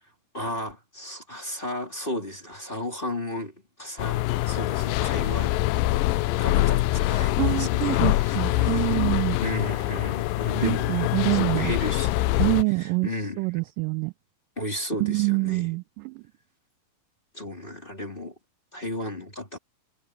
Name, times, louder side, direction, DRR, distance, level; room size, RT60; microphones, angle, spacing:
voice 1, 0.3-5.5 6.4-9.1 9.4-10.9 11.3-13.4 14.6-15.7 17.3-18.3 18.7-19.6, left 1 dB, 15° left, 2.4 m, -34 dB
sound 1, 4.0-12.6, left 17 dB, 80° left, 2.1 m, -24 dB
voice 2, 7.4-9.4 10.6-11.7 12.4-13.1 13.4-14.1 15.0-16.2, right 28 dB, 80° right, 2.0 m, -26 dB
omnidirectional pair, 4.3 m